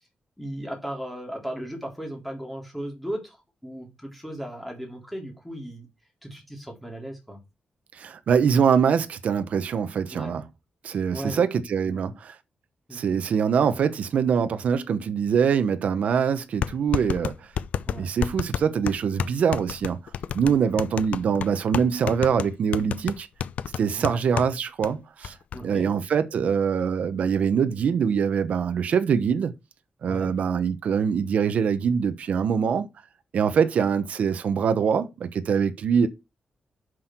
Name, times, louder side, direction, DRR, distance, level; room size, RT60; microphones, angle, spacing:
voice 1, 0.4-3.4 3.6-5.8 6.2-7.4 10.1-10.3 11.1-11.4 11.8-12.0 12.9-13.2 17.9-18.0 24.0-24.2 25.5-25.9 30.1-30.3, right 1 dB, 5° left, 3.4 m, -36 dB
voice 2, 7.9-10.4 10.8-12.3 12.9-17.5 18.0-20.0 20.3-23.3 23.8-25.4 25.6-29.5 30.0-32.9 33.3-36.1, right 7 dB, 70° right, 0.9 m, -24 dB
sound 1, 15.7-15.8 16.6-24.5 24.8-24.9 25.2-25.6, left 8 dB, 85° left, 0.5 m, -30 dB
7.6 x 6.3 x 4.5 m
wide cardioid pair, 130°, 2 cm